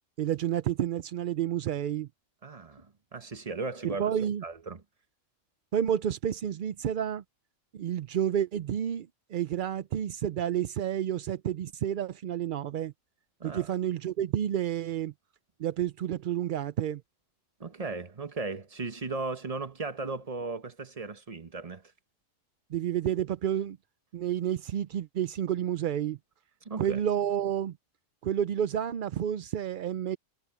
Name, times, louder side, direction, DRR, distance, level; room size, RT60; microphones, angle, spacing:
voice 1, 0.2-2.1 4.0-4.4 5.7-7.2 7.7-12.9 13.4-15.1 15.6-17.0 22.7-23.8 24.1-26.2 26.8-27.8 28.2-30.2, right 10 dB, 60° right, 0.5 m, -30 dB
voice 2, 2.4-2.9 3.1-4.1 4.4-4.8 13.4-13.7 17.6-21.8 26.6-27.0, right 3 dB, 30° right, 1.2 m, -36 dB
omnidirectional pair, 1.4 m